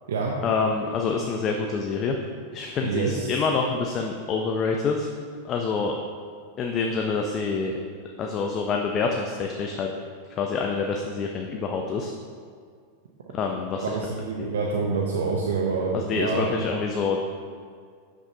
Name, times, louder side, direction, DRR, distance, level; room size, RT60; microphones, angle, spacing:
voice 1, 0.4-2.2 2.5-5.1 5.4-6.0 6.6-7.8 8.2-9.9 10.3-12.1 13.3-14.0 14.4-14.5 15.9-17.2, left 4 dB, 35° left, 2 dB, 0.5 m, -26 dB
voice 2, 2.8-3.3 13.9-16.5, right 4 dB, 85° right, -1 dB, 0.6 m, -26 dB
6.4 x 6.0 x 2.7 m, 2.1 s
hypercardioid pair, 110°, 0 cm